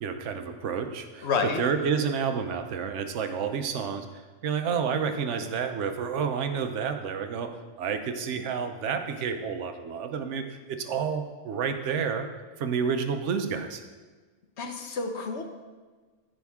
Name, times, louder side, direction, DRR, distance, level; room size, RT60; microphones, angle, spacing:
voice 1, 0.0-7.5 7.8-10.4 10.7-12.3 12.6-13.8, right 6 dB, 75° right, 7 dB, 1.1 m, -30 dB
voice 2, 1.2-1.6 14.6-15.4, left 5 dB, 65° left, 5 dB, 1.2 m, -29 dB
14.0 x 5.2 x 3.6 m, 1.4 s
omnidirectional pair, 1.3 m